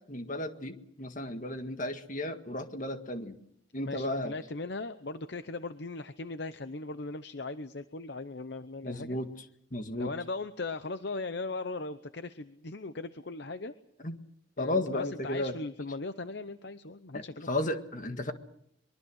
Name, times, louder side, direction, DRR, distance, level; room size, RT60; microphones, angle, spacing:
voice 1, 0.1-3.4 3.7-4.3 8.8-9.5 9.7-10.1 14.0-14.2 14.6-15.6 17.1-18.3, left 1 dB, 40° left, 7 dB, 1.8 m, -34 dB
voice 2, 3.8-9.2 9.9-13.7 14.6-17.7, left 3 dB, 55° left, 11 dB, 0.8 m, -38 dB
24.0 x 23.0 x 6.4 m, 0.73 s
head